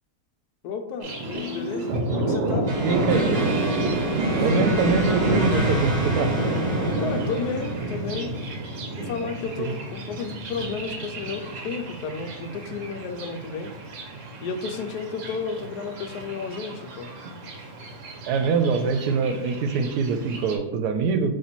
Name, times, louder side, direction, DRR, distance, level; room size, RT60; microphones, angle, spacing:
voice 1, 0.6-3.5 7.0-8.3 9.0-13.7 14.4-17.1, left 5 dB, 80° left, 6 dB, 1.1 m, -32 dB
Thunder, 1.0-20.6, right 2 dB, 60° right, 1.1 m, -29 dB
Guitar, 1.3-5.0, left 1 dB, 55° left, 0.6 m, -39 dB
sound 1, 2.7-8.1, right 1 dB, 35° right, 0.7 m, -32 dB
voice 2, 2.8-3.4 4.4-6.4 9.6-9.7 18.3-21.3, right 5 dB, 80° right, 7 dB, 1.1 m, -24 dB
4.3 x 3.0 x 4.1 m, 0.89 s
omnidirectional pair, 1.7 m